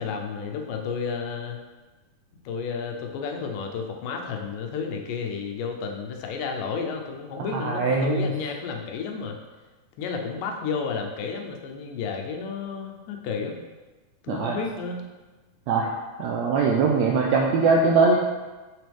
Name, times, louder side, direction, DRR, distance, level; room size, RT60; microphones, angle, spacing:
voice 1, 0.0-1.6 2.5-9.4 10.0-13.6 14.2-15.1, left 5 dB, 85° left, 3 dB, 2.4 m, -31 dB
voice 2, 7.5-8.3 14.3-14.6 15.7-15.9 16.2-18.2, right 4 dB, 80° right, -1 dB, 1.6 m, -21 dB
7.1 x 6.1 x 3.5 m, 1.2 s
omnidirectional pair, 3.7 m